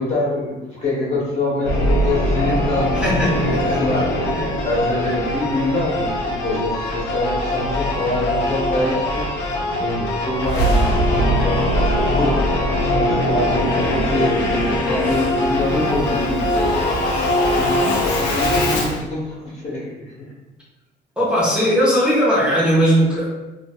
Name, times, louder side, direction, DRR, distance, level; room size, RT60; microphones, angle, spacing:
voice 1, 0.0-9.4 9.8-16.8 17.5-20.3, left 1 dB, 40° left, -7 dB, 1.3 m, -25 dB
Singing / Musical instrument, 1.6-19.0, left 1 dB, 75° left, 0.6 m, -21 dB
voice 2, 2.9-3.8 21.2-23.3, equal, 5° right, -9 dB, 0.7 m, -18 dB
2.9 x 2.6 x 2.2 m, 1.0 s
cardioid pair, 120°, 18 cm